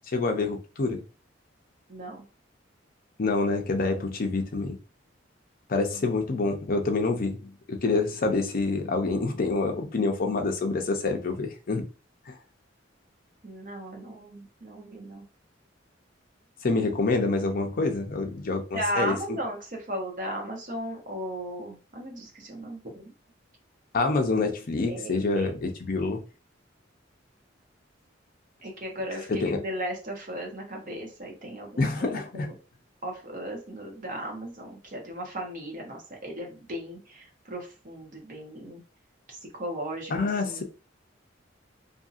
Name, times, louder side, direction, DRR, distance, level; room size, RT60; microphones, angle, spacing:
voice 1, 0.1-1.0 3.2-4.8 5.7-11.9 12.3-12.4 16.6-19.2 23.9-26.2 29.3-29.6 31.8-32.5 40.1-40.6, left 3 dB, 50° left, 0.5 m, -27 dB
voice 2, 1.9-2.2 13.4-15.3 18.7-23.0 24.9-25.5 28.6-32.5 33.0-38.8 39.3-40.6, right 1 dB, 45° right, 0.9 m, -36 dB
2.7 x 2.6 x 2.5 m
head